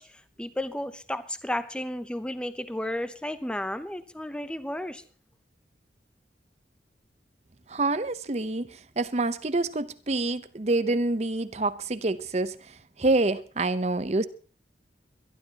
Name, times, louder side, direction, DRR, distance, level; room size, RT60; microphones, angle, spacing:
voice 1, 0.0-5.0, left 1 dB, 5° left, 0.7 m, -33 dB
voice 2, 7.7-8.7 9.0-12.6 13.0-14.2, right 2 dB, 40° right, 0.7 m, -26 dB
23.5 x 12.0 x 2.9 m
head